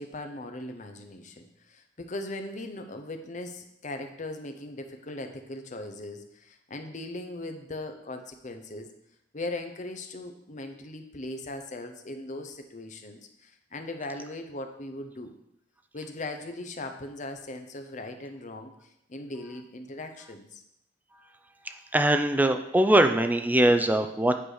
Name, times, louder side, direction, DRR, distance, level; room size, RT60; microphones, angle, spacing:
voice 1, 0.0-8.9 9.3-15.3 15.9-20.6, left 2 dB, 40° left, 6 dB, 0.8 m, -39 dB
voice 2, 21.6-24.4, right 1 dB, 10° right, 7 dB, 0.4 m, -22 dB
8.8 x 4.7 x 4.9 m, 0.79 s
head